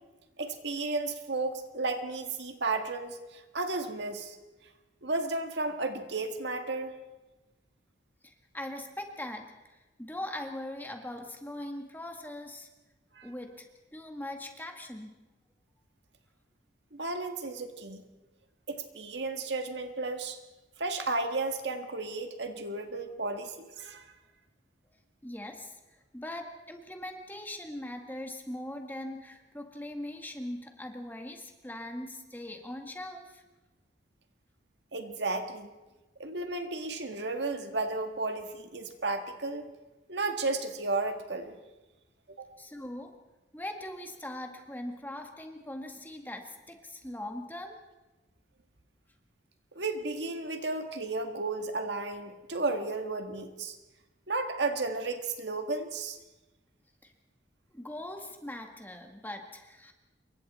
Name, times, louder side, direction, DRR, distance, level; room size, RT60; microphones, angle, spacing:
voice 1, 0.4-4.4 5.0-6.9 13.2-13.3 16.9-18.0 18.7-20.4 20.8-24.0 34.9-35.7 36.2-39.7 40.1-41.5 42.4-42.5 49.8-53.8 54.3-56.2, right 3 dB, 65° right, 6 dB, 1.9 m, -33 dB
voice 2, 8.2-12.7 13.2-13.7 13.9-15.1 25.2-25.8 26.1-33.4 42.6-43.1 43.5-47.8 57.0-57.1 57.7-59.9, left 1 dB, 10° left, 3 dB, 1.9 m, -41 dB
27.5 x 23.0 x 4.3 m, 1.1 s
head